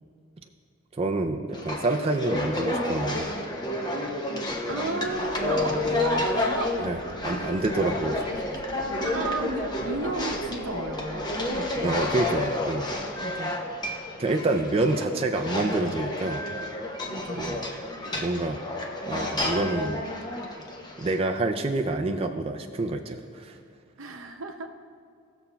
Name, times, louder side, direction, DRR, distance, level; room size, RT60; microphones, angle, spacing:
voice 1, 0.9-3.3 6.8-8.6 11.8-12.9 14.2-16.5 17.3-17.7 18.1-18.6 19.1-20.0 21.0-23.6, right 2 dB, 30° right, 3 dB, 0.3 m, -27 dB
sound 1, 1.5-21.2, left 1 dB, 20° left, 0.7 m, -30 dB
voice 2, 4.7-6.9 9.0-12.0 13.2-13.6 17.1-17.6 24.0-24.7, right 2 dB, 85° right, 5 dB, 0.8 m, -33 dB
sound 2, 5.1-12.4, left 3 dB, 65° left, 0.5 m, -48 dB
17.5 x 6.9 x 2.3 m, 2.4 s
head